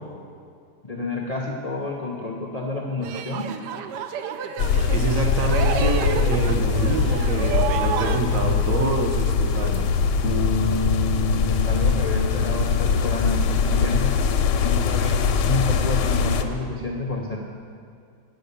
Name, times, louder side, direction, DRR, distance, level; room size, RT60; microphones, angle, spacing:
voice 1, 0.8-3.5 11.5-14.2 14.6-15.2 15.4-17.4, left 2 dB, 50° left, -1 dB, 0.4 m, -29 dB
sound 1, 3.0-8.2, right 7 dB, 75° right, 1.1 m, -30 dB
sound 2, 4.6-16.4, left 6 dB, 85° left, 1.3 m, -22 dB
voice 2, 4.9-9.9, right 3 dB, 55° right, 1 dB, 1.2 m, -26 dB
sound 3, 10.2-16.5, left 1 dB, 35° right, 1.7 m, -32 dB
9.1 x 6.5 x 6.8 m, 2.3 s
omnidirectional pair, 1.9 m